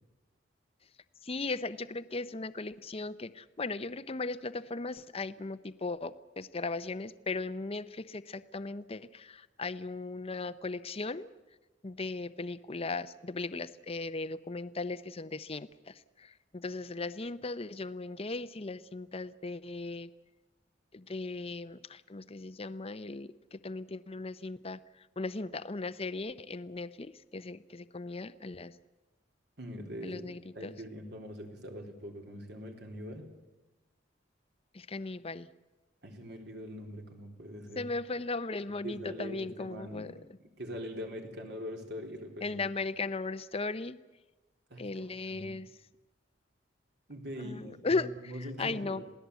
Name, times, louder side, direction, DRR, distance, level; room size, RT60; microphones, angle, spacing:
voice 1, 1.2-11.3 11.8-20.1 20.9-24.8 25.2-28.7 30.0-30.7 34.7-35.5 37.8-40.1 42.4-44.0 44.8-45.7 47.4-48.1 48.6-49.0, left 3 dB, 35° left, 12 dB, 0.7 m, -37 dB
voice 2, 29.6-33.3 36.0-37.9 38.8-40.1 40.4-42.6 44.7-45.6 47.1-49.2, equal, 65° right, 3 dB, 4.1 m, -43 dB
27.0 x 17.5 x 8.3 m, 1.1 s
head